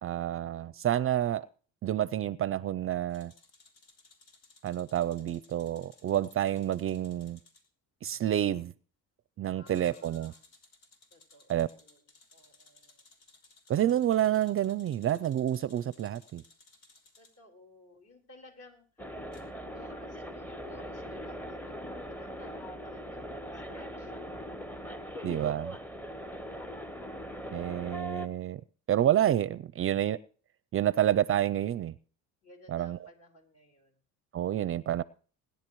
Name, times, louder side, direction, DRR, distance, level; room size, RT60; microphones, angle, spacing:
voice 1, 0.0-1.5 1.8-3.3 4.6-7.4 8.0-8.7 9.4-10.3 11.5-11.7 13.7-16.4 25.2-25.8 27.5-28.6 28.9-30.2 30.7-31.9 32.7-33.0 34.3-35.0, right 11 dB, 40° right, 0.5 m, -28 dB
sound 1, 3.1-7.7 9.7-17.3 19.3-19.4, left 3 dB, 80° left, 3.4 m, -60 dB
voice 2, 9.4-10.5 11.1-12.0 12.3-13.0 17.2-19.1 19.7-24.4 25.1-25.6 26.2-26.8 32.4-34.0, left 1 dB, 45° left, 4.4 m, -58 dB
sound 2, 19.0-28.3, equal, 5° left, 0.8 m, -41 dB
20.5 x 10.5 x 3.1 m
cardioid pair, 100°, 33 cm